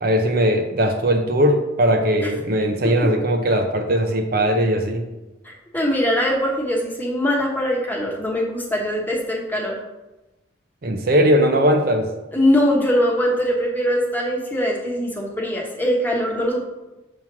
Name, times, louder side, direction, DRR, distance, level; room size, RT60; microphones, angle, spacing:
voice 1, 0.0-5.0 10.8-12.1, equal, 45° right, 4 dB, 0.6 m, -19 dB
voice 2, 5.4-9.8 12.3-16.6, equal, 10° left, -1 dB, 1.0 m, -22 dB
7.0 x 3.0 x 5.9 m, 1.0 s
head